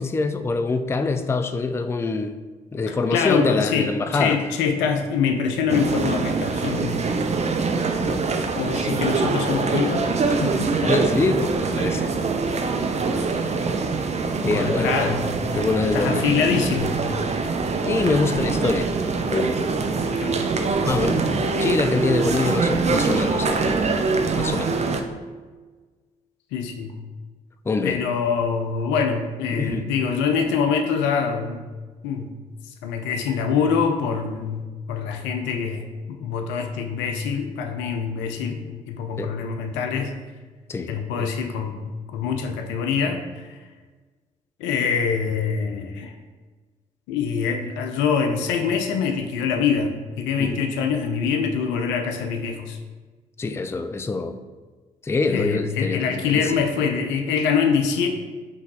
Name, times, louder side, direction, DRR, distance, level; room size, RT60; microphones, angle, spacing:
voice 1, 0.0-2.4 2.7-4.5 8.0-8.2 10.8-12.1 14.4-15.1 15.5-16.2 17.8-18.9 19.3-19.6 20.0-20.1 20.9-23.8 24.4-24.8 27.7-28.0 29.5-29.8 39.2-39.3 40.7-41.3 50.4-50.6 53.4-54.4 55.0-56.7, left 3 dB, 15° left, 9 dB, 0.3 m, -25 dB
voice 2, 2.9-7.0 8.5-10.9 14.5-15.3 15.9-17.0 20.1-20.5 26.5-27.0 27.8-31.7 32.0-32.3 32.8-40.1 40.9-43.6 44.6-46.1 47.1-52.8 55.3-58.1, left 6 dB, 75° left, 6 dB, 0.5 m, -25 dB
sound 1, 5.7-25.0, right 4 dB, 35° right, 0.6 m, -24 dB
5.7 x 3.0 x 2.9 m, 1.4 s
hypercardioid pair, 45°, 19 cm